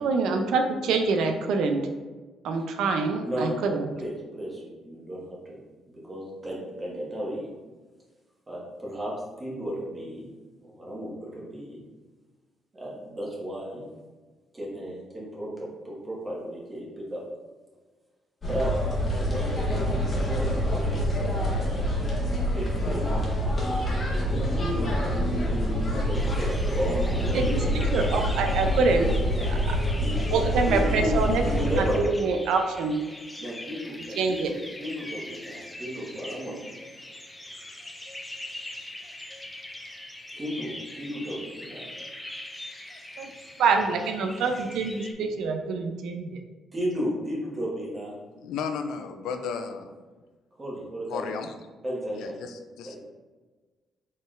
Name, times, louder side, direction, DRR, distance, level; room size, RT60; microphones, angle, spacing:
voice 1, 0.0-1.9 2.4-3.8 27.3-27.6 27.9-29.1 29.5-29.8 30.3-31.4 32.2-33.0 34.2-34.5 43.2-43.3 43.6-46.4, right 4 dB, 80° right, 5 dB, 0.5 m, -25 dB
voice 2, 3.2-5.6 5.9-7.5 8.5-10.3 10.6-11.8 12.7-13.9 14.5-17.2 18.5-19.8 20.1-21.1 21.5-21.9 22.5-23.1 23.6-24.9 25.9-27.8 30.0-32.0 33.4-34.5 34.8-36.6 40.3-41.9 46.7-48.2 50.5-51.2 51.8-52.4 52.8-53.0, equal, 25° right, -5 dB, 1.5 m, -34 dB
sound 1, 18.4-32.0, equal, 35° left, 1.1 m, -26 dB
sound 2, 26.1-45.1, left 1 dB, 10° left, 0.5 m, -42 dB
voice 3, 48.4-49.9 51.1-51.5 52.1-53.1, left 6 dB, 85° left, 7 dB, 0.4 m, -34 dB
4.1 x 3.8 x 2.5 m, 1.3 s
cardioid pair, 90°, 0 cm